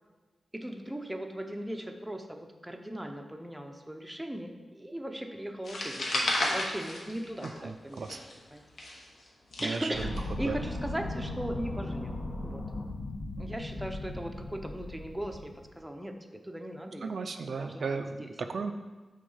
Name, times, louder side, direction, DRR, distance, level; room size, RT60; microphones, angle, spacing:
voice 1, 0.5-8.2 8.5-8.6 9.6-12.7 13.4-17.1 17.5-18.3, right 1 dB, 5° right, 4 dB, 0.5 m, -38 dB
sound 1, 5.6-7.7 8.0-10.2, left 1 dB, 75° left, 1.1 m, -32 dB
voice 2, 7.6-8.2 9.6-10.1 10.4-10.6 17.0-18.7, right 4 dB, 65° right, 7 dB, 0.3 m, -35 dB
sound 2, 9.9-15.8, left 2 dB, 60° left, 0.9 m, -37 dB
6.5 x 3.6 x 5.4 m, 1.3 s
wide cardioid pair, 135°, 0 cm